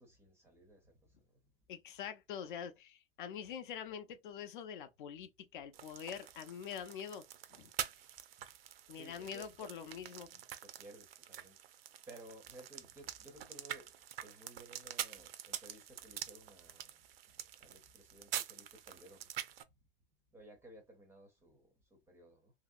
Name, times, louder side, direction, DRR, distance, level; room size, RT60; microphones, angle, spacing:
voice 1, 0.0-1.4 8.9-9.7 10.6-13.9 14.2-17.0 17.6-19.3 20.3-22.5, right 1 dB, 10° right, 0.5 m, -57 dB
voice 2, 1.7-7.2 7.5-7.7 8.9-10.3, left 8 dB, 55° left, 0.6 m, -45 dB
sound 1, 5.7-19.6, right 11 dB, 70° right, 0.5 m, -46 dB
2.9 x 2.8 x 2.4 m
hypercardioid pair, 145°, 31 cm